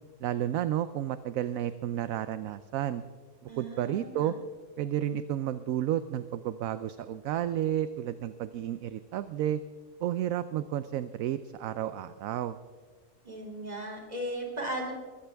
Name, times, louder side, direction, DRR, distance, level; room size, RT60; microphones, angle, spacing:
voice 1, 0.2-3.0 3.6-4.3 4.8-9.6 10.0-12.6, right 11 dB, 70° right, 13 dB, 0.9 m, -31 dB
voice 2, 3.5-4.4 13.2-15.0, right 1 dB, 25° right, 1 dB, 3.1 m, -37 dB
22.5 x 15.5 x 3.4 m, 1.5 s
omnidirectional pair, 1.7 m